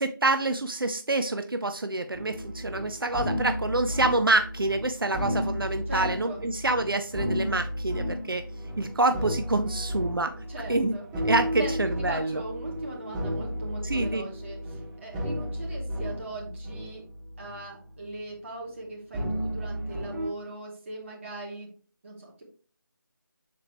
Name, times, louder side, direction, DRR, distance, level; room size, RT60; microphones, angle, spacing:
voice 1, 0.0-8.4 8.8-10.3 10.7-10.9 11.2-12.4 13.9-14.2, right 2 dB, 90° right, 8 dB, 0.7 m, -27 dB
sound 1, 2.1-17.7 17.9-18.3 19.1-20.3, equal, 10° right, 0.8 m, -33 dB
voice 2, 5.9-6.5 10.3-11.1 11.6-17.0 17.4-21.7 22.0-22.4, right 2 dB, 35° right, -2 dB, 2.5 m, -39 dB
6.8 x 4.8 x 3.1 m, 0.39 s
figure-of-eight pair, 165°, 11 cm